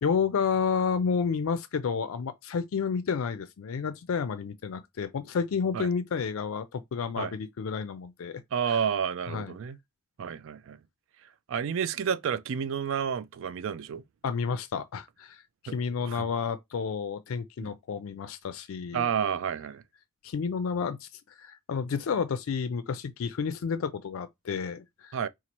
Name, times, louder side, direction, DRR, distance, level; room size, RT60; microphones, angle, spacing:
voice 1, 0.0-8.4 8.7-8.8 9.3-9.5 14.2-19.1 20.2-21.1 21.4-25.2, left 6 dB, 80° left, 0.4 m, -30 dB
voice 2, 8.5-9.8 10.2-10.8 11.5-14.0 15.7-15.8 16.0-16.3 17.6-17.7 18.9-19.8 25.1-25.3, right 7 dB, 65° right, 0.3 m, -30 dB
2.9 x 2.4 x 4.0 m
head